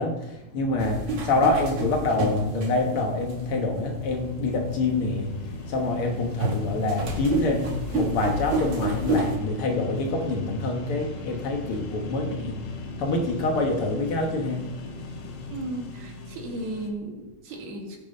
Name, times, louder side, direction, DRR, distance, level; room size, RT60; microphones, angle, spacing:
voice 1, 0.0-14.7 15.3-15.4, left 2 dB, 60° left, 2 dB, 1.5 m, -26 dB
sound 1, 0.6-16.9, left 2 dB, 90° left, 3.6 m, -38 dB
sound 2, 0.8-3.3 4.0-4.1 6.4-9.4, right 2 dB, 40° right, 2.3 m, -28 dB
voice 2, 15.5-18.0, right 2 dB, 80° right, 0 dB, 4.1 m, -35 dB
17.5 x 6.6 x 5.4 m, 0.99 s
omnidirectional pair, 4.4 m